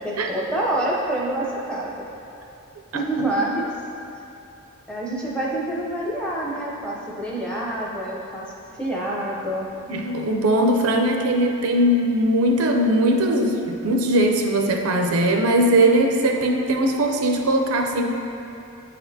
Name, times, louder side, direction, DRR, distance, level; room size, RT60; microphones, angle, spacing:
voice 1, 0.0-2.1 2.9-3.7 4.9-8.4 8.8-9.7, right 1 dB, 5° left, -4 dB, 0.6 m, -27 dB
voice 2, 9.9-18.0, right 1 dB, 75° right, 2 dB, 0.5 m, -20 dB
8.4 x 4.2 x 2.7 m, 2.8 s
head